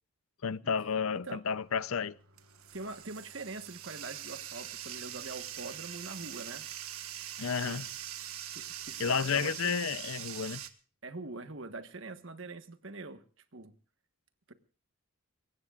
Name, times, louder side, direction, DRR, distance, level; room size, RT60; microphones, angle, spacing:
voice 1, 0.4-2.2 7.4-7.9 9.0-10.6, left 6 dB, 75° left, 0.6 m, -31 dB
Bathtub (filling or washing), 1.5-10.7, right 11 dB, 80° right, 1.6 m, -43 dB
voice 2, 2.7-6.7 7.6-7.8 8.5-9.7 11.0-13.2 13.5-13.7 14.5-14.6, right 3 dB, 60° right, 1.4 m, -43 dB
23.0 x 19.5 x 2.4 m
head